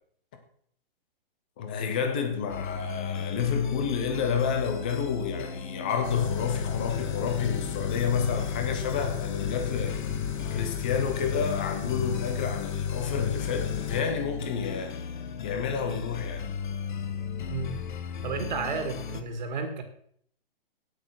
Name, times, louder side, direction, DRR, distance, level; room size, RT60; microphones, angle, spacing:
voice 1, 1.6-10.0 10.5-15.0 15.4-16.5, left 6 dB, 10° left, 0.4 m, -29 dB
sound 1, 2.5-19.2, left 6 dB, 55° left, 1.1 m, -36 dB
sound 2, 6.0-14.0, left 8 dB, 35° left, 1.0 m, -33 dB
voice 2, 17.5-17.8 18.2-19.8, right 4 dB, 50° right, 2.0 m, -32 dB
9.0 x 8.5 x 6.0 m
hypercardioid pair, 170°, 30 cm